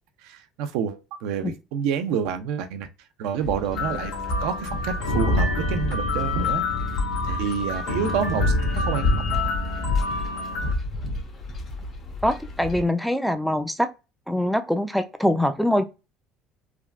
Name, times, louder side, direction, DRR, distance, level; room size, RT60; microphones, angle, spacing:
voice 1, 0.2-2.9 3.2-4.1 4.4-6.7 7.2-9.5, right 7 dB, 80° right, 0.4 m, -28 dB
sound 1, 3.4-12.9, left 2 dB, 45° left, 0.8 m, -28 dB
sound 2, 3.8-10.7, left 4 dB, 85° left, 0.9 m, -29 dB
voice 2, 12.2-13.9 14.3-15.9, left 1 dB, ahead, 0.4 m, -23 dB
3.4 x 2.1 x 2.3 m
cardioid pair, 110°, 0 cm